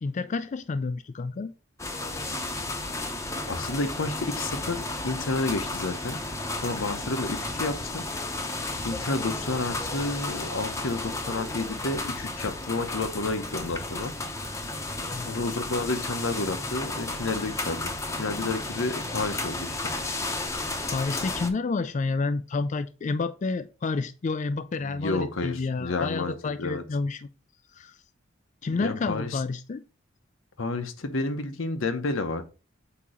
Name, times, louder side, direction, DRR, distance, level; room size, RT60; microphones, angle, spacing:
voice 1, 0.0-1.5 15.1-15.4 20.9-27.3 27.7-28.0 28.6-29.8, left 4 dB, 40° left, 0.4 m, -30 dB
sound 1, 1.8-21.5, left 2 dB, 15° left, 0.8 m, -33 dB
voice 2, 3.5-6.2 6.6-8.0 8.8-14.1 15.1-17.9 18.2-19.9 24.8-26.8 28.8-29.4 30.6-32.4, left 3 dB, 90° left, 1.0 m, -30 dB
8.3 x 2.9 x 5.0 m
head